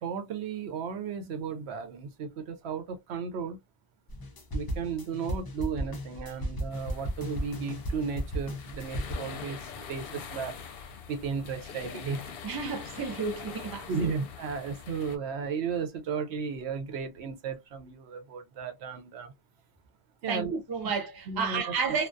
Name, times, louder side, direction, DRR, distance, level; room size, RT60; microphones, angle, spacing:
voice 1, 0.0-3.6 4.5-10.6 11.1-12.3 13.9-19.3 20.2-20.6 21.3-22.0, right 6 dB, 85° right, 0.9 m, -34 dB
sound 1, 4.1-9.1, equal, 35° left, 0.3 m, -35 dB
sound 2, 6.7-15.2, left 6 dB, 65° left, 0.8 m, -43 dB
voice 2, 12.4-14.1 20.3-22.1, right 5 dB, 30° right, 0.5 m, -31 dB
2.3 x 2.2 x 2.5 m
omnidirectional pair, 1.1 m